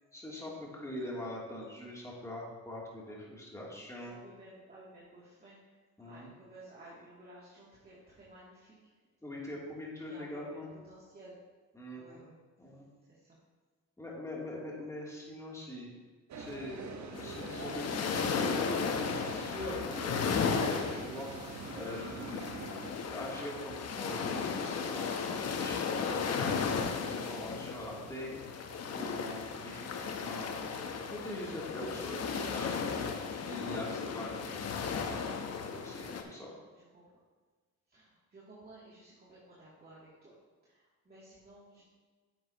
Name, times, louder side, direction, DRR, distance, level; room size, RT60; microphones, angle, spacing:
voice 1, 0.1-4.1 6.0-6.3 9.2-10.7 11.7-12.2 12.6-12.9 14.0-15.9 16.4-21.3 21.7-26.5 27.0-28.4 28.9-30.5 31.1-33.1 33.4-34.6 34.9-35.4 35.7-36.6, left 1 dB, 10° left, -4 dB, 2.8 m, -43 dB
voice 2, 4.1-5.8 6.0-8.8 10.0-11.4 11.9-12.4 13.1-13.4 35.9-36.5 36.7-37.2 37.9-41.8, right 1 dB, 30° right, -8 dB, 2.5 m, -55 dB
sound 1, 16.3-22.9, right 5 dB, 65° right, 1.1 m, -45 dB
sound 2, 17.1-36.2, left 5 dB, 55° left, 0.9 m, -35 dB
10.0 x 7.9 x 2.9 m, 1.4 s
cardioid pair, 90°, 30 cm